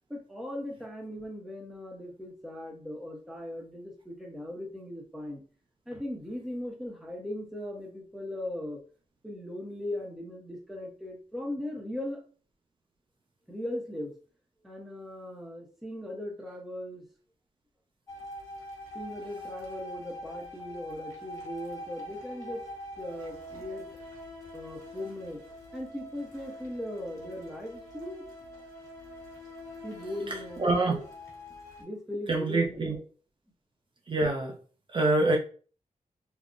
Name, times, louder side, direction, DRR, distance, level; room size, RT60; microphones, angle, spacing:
voice 1, 0.1-5.4 5.9-8.8 9.2-12.2 13.5-14.1 14.6-17.0 18.9-22.6 23.0-23.9 24.5-25.4 25.7-28.2 29.8-31.0 31.8-33.0, left 1 dB, ahead, 0 dB, 0.7 m, -38 dB
sound 1, 18.1-31.8, equal, 25° left, 1.2 m, -44 dB
voice 2, 30.6-31.0 32.3-33.0 34.1-34.6 34.9-35.4, right 2 dB, 40° right, 0 dB, 0.5 m, -25 dB
3.6 x 2.0 x 2.4 m, 0.40 s
wide cardioid pair, 130°, 13 cm